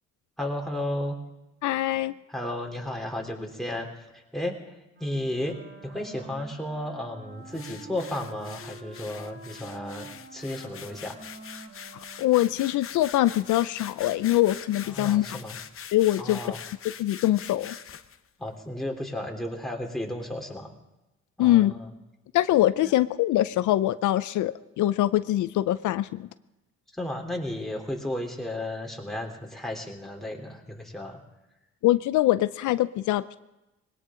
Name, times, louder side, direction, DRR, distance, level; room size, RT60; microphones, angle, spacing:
voice 1, 0.4-1.2 2.3-4.7 5.0-5.5 5.8-11.1 15.0-15.6 16.2-16.6 18.4-20.7 21.4-21.8 22.8-22.9 26.9-31.2, left 1 dB, ahead, 0 dB, 3.4 m, -33 dB
voice 2, 1.6-2.1 11.9-15.3 15.9-16.4 17.0-17.8 21.4-21.7 22.3-26.3 31.8-33.4, left 14 dB, 80° left, 14 dB, 0.5 m, -23 dB
Wind instrument woodwind instrument, 4.9-13.1, right 2 dB, 35° right, 2.4 m, -48 dB
sound 1, 7.5-18.2, left 8 dB, 45° left, 0.8 m, -43 dB
20.5 x 18.0 x 3.8 m, 1.0 s
cardioid pair, 90°, 30 cm